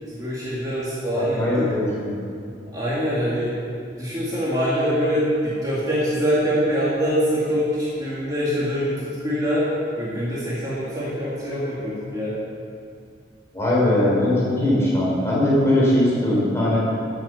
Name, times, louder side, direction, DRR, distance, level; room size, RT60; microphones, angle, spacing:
voice 1, 0.1-1.7 2.7-3.5 4.0-9.7 10.0-12.3, equal, 20° right, -8 dB, 2.2 m, -24 dB
voice 2, 1.1-2.1 13.5-16.8, left 1 dB, 15° left, -6 dB, 3.5 m, -20 dB
12.0 x 6.9 x 7.1 m, 2.4 s
head